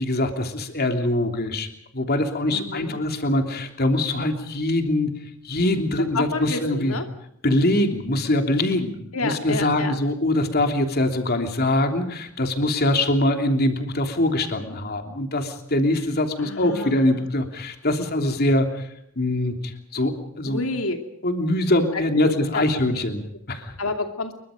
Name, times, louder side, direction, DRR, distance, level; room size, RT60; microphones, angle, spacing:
voice 1, 0.0-1.7 1.9-5.1 5.4-7.0 7.4-9.0 9.2-18.9 19.2-20.6 21.2-23.7, left 1 dB, 50° left, 5 dB, 3.1 m, -23 dB
voice 2, 2.5-3.0 6.1-7.1 9.1-9.9 16.4-17.3 20.5-21.0 21.9-22.6 23.8-24.3, left 2 dB, 85° left, 5 dB, 2.6 m, -29 dB
28.5 x 23.5 x 5.2 m, 0.74 s
head